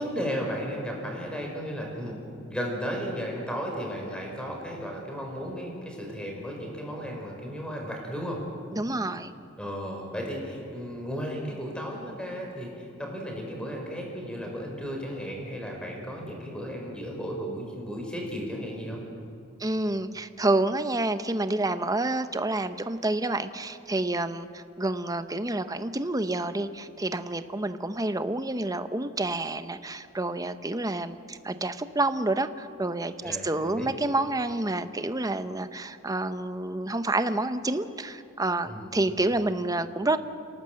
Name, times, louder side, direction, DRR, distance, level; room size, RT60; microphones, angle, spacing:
voice 1, 0.0-2.2 2.5-8.4 9.6-19.0 33.2-33.9 38.6-39.0, equal, 5° left, 0 dB, 4.9 m, -34 dB
voice 2, 8.7-9.3 19.6-40.2, right 2 dB, 15° right, 11 dB, 0.8 m, -28 dB
27.5 x 18.0 x 7.8 m, 2.5 s
head